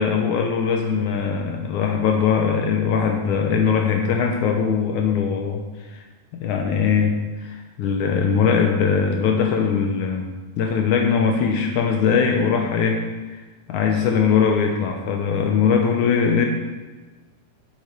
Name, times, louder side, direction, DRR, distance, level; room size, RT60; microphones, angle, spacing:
voice 1, 0.0-5.6 5.9-6.0 6.4-7.1 7.4-10.3 10.6-13.4 13.7-16.5, left 6 dB, 90° left, 3 dB, 1.7 m, -21 dB
11.0 x 8.3 x 5.2 m, 1.2 s
omnidirectional pair, 4.8 m